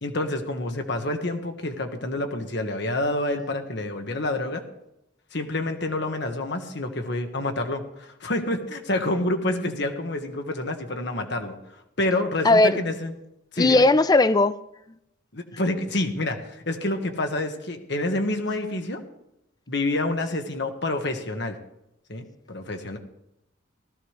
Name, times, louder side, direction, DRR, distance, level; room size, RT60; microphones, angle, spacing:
voice 1, 0.0-4.6 5.3-11.5 12.0-13.1 13.5-13.9 15.3-19.0 19.7-21.5 22.1-23.0, left 2 dB, 60° left, 6 dB, 1.5 m, -28 dB
voice 2, 12.4-12.8 13.6-14.5, left 2 dB, 20° left, 15 dB, 0.4 m, -17 dB
17.0 x 14.5 x 3.3 m, 0.84 s
head